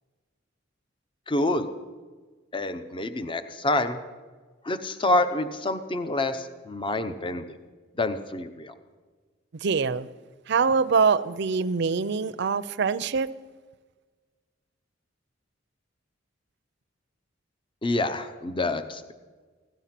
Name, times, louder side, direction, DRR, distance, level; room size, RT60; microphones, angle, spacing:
voice 1, 1.3-1.7 2.5-4.0 4.6-7.4 8.0-8.7 17.8-19.1, left 2 dB, 25° left, 10 dB, 0.7 m, -27 dB
voice 2, 9.6-10.1 10.5-13.3, right 5 dB, 60° right, 13 dB, 0.5 m, -24 dB
16.5 x 11.0 x 5.9 m, 1.4 s
head